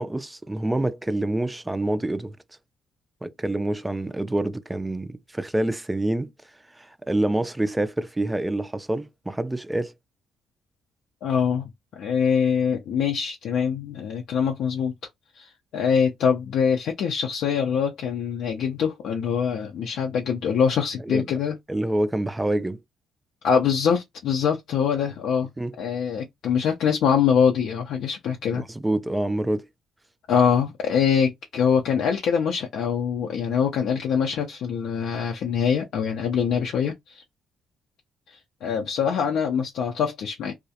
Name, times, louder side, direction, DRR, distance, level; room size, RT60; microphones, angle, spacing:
voice 1, 0.0-2.4 3.2-6.3 6.8-9.9 21.1-21.2 21.7-22.8 25.6-25.7 28.6-29.7, right 1 dB, 10° right, 0.3 m, -26 dB
voice 2, 11.2-14.9 15.3-21.6 23.4-25.5 25.8-28.6 30.3-37.2 38.3-40.5, left 7 dB, 80° left, 0.4 m, -24 dB
2.3 x 2.0 x 2.7 m
cardioid pair, 90°, 0 cm